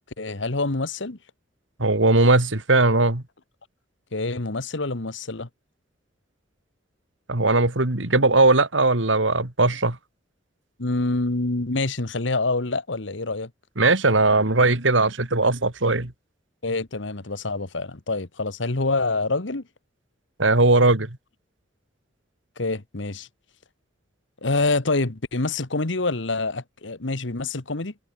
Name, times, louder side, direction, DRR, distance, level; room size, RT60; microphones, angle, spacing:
voice 1, 0.2-1.2 4.1-5.5 10.8-13.5 16.6-19.6 22.6-23.3 24.4-27.9, left 3 dB, 70° left, 1.5 m, -26 dB
voice 2, 1.8-3.2 7.3-10.0 13.8-16.1 20.4-21.1, right 2 dB, 75° right, 2.6 m, -19 dB
head